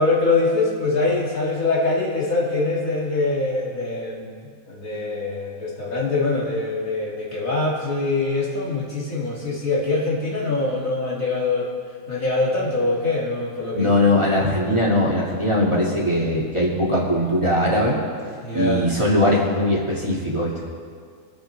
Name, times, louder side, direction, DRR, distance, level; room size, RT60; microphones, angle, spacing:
voice 1, 0.0-4.3 4.7-11.7 12.1-14.1 18.4-18.9, left 3 dB, 70° left, -5 dB, 2.9 m, -23 dB
voice 2, 13.7-18.0 18.5-20.5, left 1 dB, 20° right, -5 dB, 2.1 m, -20 dB
24.0 x 8.1 x 3.3 m, 2.1 s
omnidirectional pair, 1.5 m